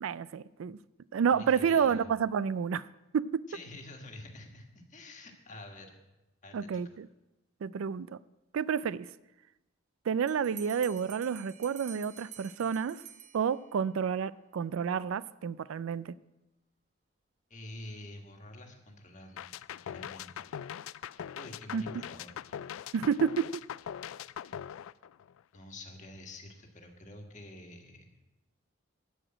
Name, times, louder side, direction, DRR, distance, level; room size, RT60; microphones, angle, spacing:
voice 1, 0.0-0.8 1.1-2.8 3.1-3.4 6.5-7.1 7.6-8.2 8.5-9.1 10.1-13.0 13.3-16.2 21.7-21.8 22.9-23.6, right 7 dB, 80° right, 0.3 m, -30 dB
voice 2, 1.3-2.1 3.5-6.0 6.4-6.8 17.5-20.5 21.3-22.3 25.5-28.1, left 1 dB, 35° left, 1.5 m, -48 dB
Bell, 10.3-13.9, right 9 dB, 35° right, 0.6 m, -50 dB
sound 1, 19.4-25.6, left 9 dB, 80° left, 0.3 m, -41 dB
13.5 x 5.0 x 8.9 m
head